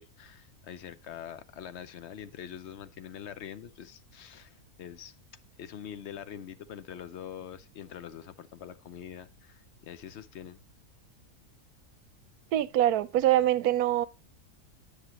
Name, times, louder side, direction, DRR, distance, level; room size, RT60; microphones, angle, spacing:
voice 1, 0.0-5.1 5.6-10.6, left 9 dB, 60° left, 0.8 m, -44 dB
voice 2, 12.5-14.1, right 13 dB, 90° right, 1.1 m, -24 dB
9.8 x 6.8 x 2.9 m
omnidirectional pair, 1.6 m